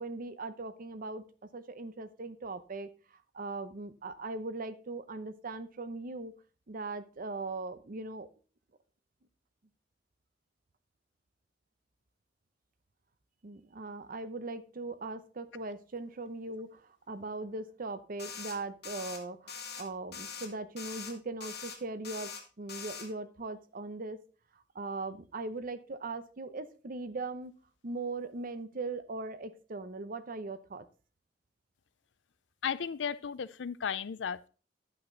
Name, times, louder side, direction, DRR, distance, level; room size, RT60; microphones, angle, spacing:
voice 1, 0.0-6.3 6.7-8.3 13.4-22.3 22.6-24.2 24.7-27.5 27.8-30.9, right 3 dB, 50° right, 0.7 m, -40 dB
sound 1, 18.2-18.6 18.8-19.2 19.5-19.8 20.1-20.5 20.8-21.1 21.4-21.8 22.0-22.4 22.7-23.1, left 6 dB, 65° left, 1.4 m, -42 dB
voice 2, 32.6-34.5, left 7 dB, 85° left, 0.5 m, -35 dB
10.5 x 5.8 x 3.9 m
head